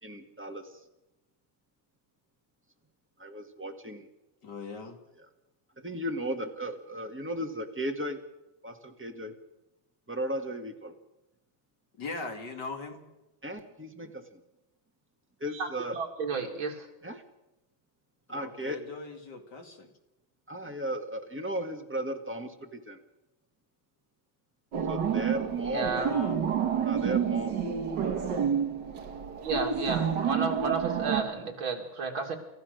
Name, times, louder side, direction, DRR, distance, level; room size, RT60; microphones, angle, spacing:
voice 1, 0.0-0.7 3.2-4.1 5.8-8.2 8.6-9.3 10.1-10.9 13.4-14.4 15.4-16.0 17.0-17.2 18.3-18.8 20.5-23.0 24.9-25.8 26.8-27.6, right 1 dB, 5° right, 4 dB, 1.6 m, -35 dB
voice 2, 4.4-5.0 12.0-13.0 18.3-19.9 25.9-26.4, left 3 dB, 60° left, 4 dB, 2.8 m, -40 dB
voice 3, 15.5-16.9 25.6-26.1 29.4-32.4, right 4 dB, 75° right, 3 dB, 3.2 m, -33 dB
sound 1, 24.7-31.2, right 7 dB, 60° right, 2.0 m, -29 dB
29.0 x 15.0 x 6.6 m, 0.96 s
omnidirectional pair, 2.2 m